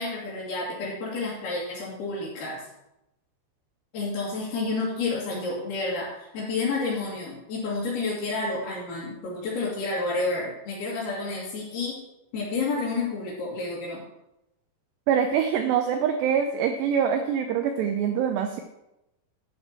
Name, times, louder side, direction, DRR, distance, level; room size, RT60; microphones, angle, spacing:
voice 1, 0.0-2.6 3.9-12.0 12.3-14.0, left 3 dB, 55° left, -9 dB, 4.1 m, -30 dB
voice 2, 15.1-18.6, right 8 dB, 85° right, 6 dB, 2.4 m, -24 dB
11.0 x 8.3 x 4.4 m, 0.89 s
omnidirectional pair, 5.7 m